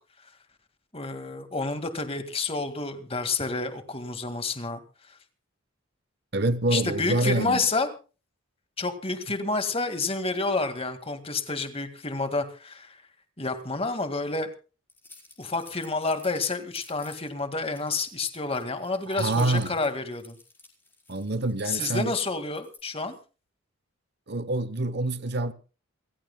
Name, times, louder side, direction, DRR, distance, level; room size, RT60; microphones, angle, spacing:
voice 1, 0.9-4.8 6.7-7.9 8.8-13.0 13.4-14.5 15.4-20.4 21.6-23.1, left 3 dB, 25° left, 1.8 m, -29 dB
voice 2, 6.3-7.6 19.1-19.7 21.1-22.1 24.3-25.5, right 2 dB, 50° right, 0.9 m, -26 dB
sound 1, 14.9-17.3 17.7-22.1 22.5-22.8, left 3 dB, 10° left, 4.7 m, -51 dB
28.0 x 15.0 x 2.2 m
head